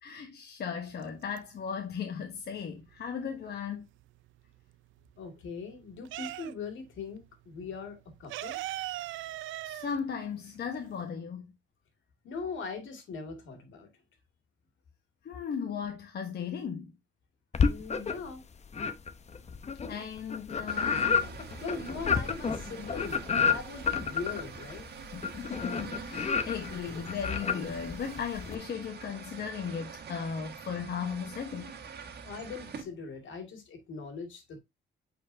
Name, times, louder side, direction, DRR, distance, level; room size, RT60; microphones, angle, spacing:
voice 1, 0.0-3.9 9.6-11.5 15.2-16.9 19.9-21.2 25.1-31.7, left 6 dB, 55° left, 1.1 m, -36 dB
sound 1, 0.9-1.8 2.1-4.1 4.5-6.9 7.1-7.3 7.5-11.1, right 15 dB, 80° right, 0.4 m, -40 dB
voice 2, 5.2-8.6 12.2-13.9 17.7-18.4 21.6-24.9 32.2-34.6, left 4 dB, 75° left, 2.3 m, -40 dB
sound 2, 17.5-18.4 18.7-28.6, left 6 dB, 35° left, 0.8 m, -30 dB
sound 3, 20.7-32.8, right 6 dB, 55° right, 1.5 m, -46 dB
8.3 x 4.4 x 2.6 m
cardioid pair, 90°, 20 cm